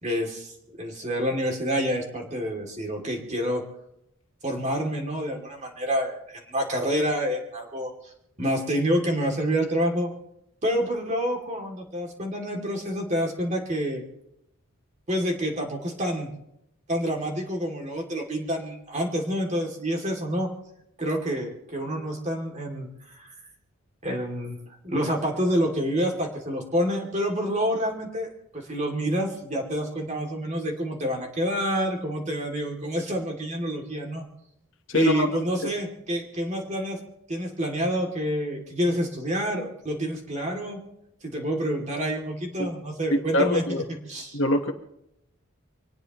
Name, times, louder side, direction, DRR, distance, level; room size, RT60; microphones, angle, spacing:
voice 1, 0.0-3.6 4.4-6.2 6.5-8.1 8.4-10.1 10.6-14.0 15.1-16.3 16.9-20.5 21.0-22.9 23.2-23.3 24.0-24.6 24.8-34.2 34.9-37.0 37.3-40.8 41.2-43.6 44.1-44.4, equal, 30° right, 1 dB, 2.7 m, -28 dB
voice 2, 34.9-35.3 42.6-42.7 43.1-43.8 44.3-44.7, left 1 dB, 60° left, 5 dB, 1.3 m, -24 dB
24.5 x 19.0 x 3.1 m, 0.82 s
head